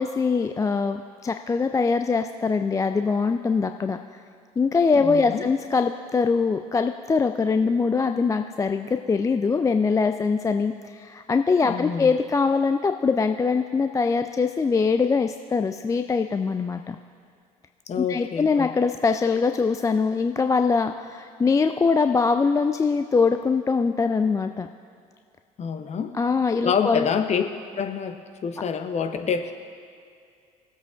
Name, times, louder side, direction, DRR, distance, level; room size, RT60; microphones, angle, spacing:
voice 1, 0.0-4.0 4.6-17.0 18.0-24.7 26.1-27.1, left 4 dB, 15° left, 7 dB, 0.4 m, -23 dB
voice 2, 5.0-5.5 11.6-12.1 17.9-18.7 25.6-26.2 26.6-27.4 27.7-29.5, left 6 dB, 35° left, 7 dB, 0.8 m, -27 dB
19.0 x 8.0 x 2.5 m, 2.3 s
figure-of-eight pair, 55°, 19 cm